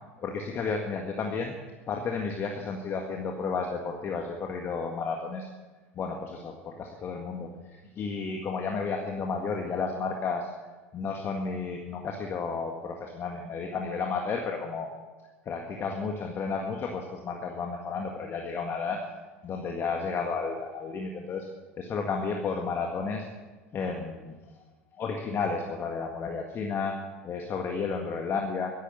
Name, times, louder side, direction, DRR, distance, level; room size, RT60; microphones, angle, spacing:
voice 1, 0.2-1.5 1.9-5.5 6.0-10.5 10.9-14.9 15.5-19.0 19.4-21.5 21.8-23.3 23.7-24.3 25.0-26.9 27.2-28.7, left 5 dB, 35° left, 2 dB, 1.8 m, -32 dB
14.0 x 11.5 x 8.2 m, 1.3 s
figure-of-eight pair, 75°, 7 cm